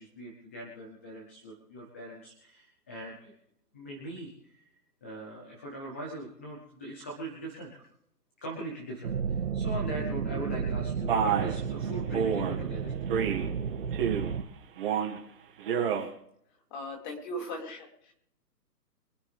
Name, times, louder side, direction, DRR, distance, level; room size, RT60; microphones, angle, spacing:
voice 1, 0.0-3.3 3.7-4.7 5.0-7.8 8.4-13.0, right 1 dB, 10° left, -1 dB, 0.8 m, -41 dB
sound 1, 9.0-14.4, right 6 dB, 50° right, 1.6 m, -32 dB
Male speech man speaking, 11.1-11.5 12.1-12.5 13.1-13.5 13.9-14.4 14.8-15.2 15.6-16.1, right 7 dB, 35° right, 2.3 m, -28 dB
voice 2, 16.7-17.9, equal, 30° left, 1 dB, 3.6 m, -37 dB
25.0 x 9.8 x 3.5 m, 0.72 s
hypercardioid pair, 165°, 48 cm